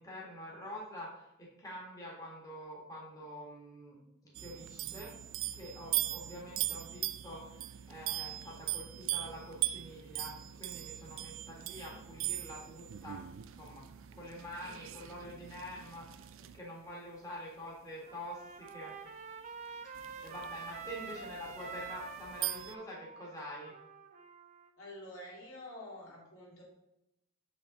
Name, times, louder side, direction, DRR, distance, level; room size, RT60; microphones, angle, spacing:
voice 1, 0.0-4.0 4.2-5.1 5.5-13.8 14.1-18.9 19.9-23.7, equal, 15° left, -4 dB, 1.7 m, -46 dB
sound 1, 4.3-16.6 18.7-18.8 19.9-22.7, right 15 dB, 65° right, 0.4 m, -40 dB
voice 2, 6.2-7.0 11.9-12.0 14.6-15.5 21.1-21.5 24.8-26.6, left 1 dB, 75° left, -2 dB, 2.5 m, -51 dB
Trumpet, 18.1-24.7, right 5 dB, 35° right, 0.7 m, -47 dB
7.3 x 5.2 x 4.0 m, 0.87 s
head